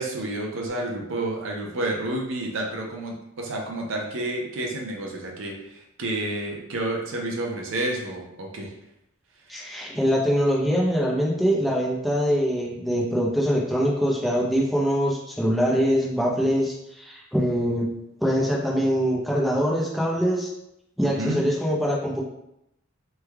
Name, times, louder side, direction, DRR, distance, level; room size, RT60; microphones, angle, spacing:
voice 1, 0.0-8.7 9.5-9.6 21.0-21.5, right 1 dB, 65° right, 0 dB, 0.6 m, -30 dB
voice 2, 9.5-17.9 18.2-20.5 21.0-22.2, equal, ahead, -3 dB, 0.5 m, -23 dB
3.2 x 2.2 x 3.3 m, 0.82 s
head